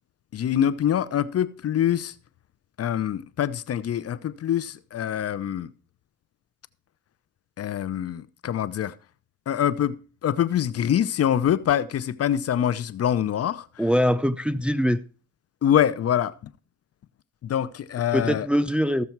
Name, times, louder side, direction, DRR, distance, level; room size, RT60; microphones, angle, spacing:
voice 1, 0.3-2.1 2.8-5.7 7.6-8.9 9.5-10.0 10.2-13.7 15.6-16.3 17.4-18.5, left 10 dB, 55° left, 0.7 m, -24 dB
voice 2, 13.8-15.0 18.1-19.0, equal, 5° right, 0.5 m, -22 dB
14.5 x 6.8 x 4.6 m
cardioid pair, 90°, 30 cm